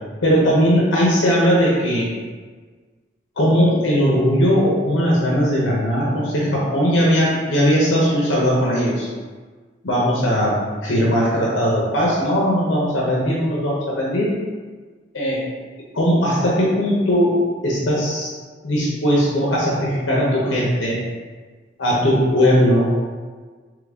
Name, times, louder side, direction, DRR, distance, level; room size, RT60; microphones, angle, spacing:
voice 1, 0.2-2.1 3.4-9.1 9.8-10.6 10.8-14.3 15.1-15.4 15.9-17.3 17.6-18.3 18.6-21.0 21.8-22.9, equal, 75° left, -5 dB, 0.8 m, -18 dB
3.8 x 3.1 x 3.6 m, 1.5 s
head